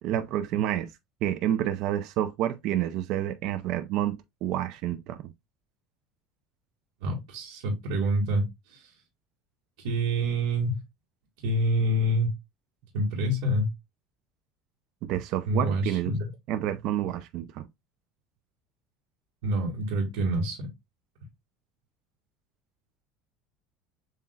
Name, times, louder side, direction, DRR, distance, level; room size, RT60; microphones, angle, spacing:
voice 1, 0.0-0.9 1.2-5.2 15.0-16.1 16.5-17.7, right 11 dB, 60° right, 0.5 m, -29 dB
voice 2, 7.0-8.9 9.8-10.8 11.4-12.3 12.9-13.7 15.5-16.2 19.4-20.7, right 1 dB, 80° right, 1.8 m, -27 dB
7.3 x 2.9 x 2.3 m
cardioid pair, 135°, 0 cm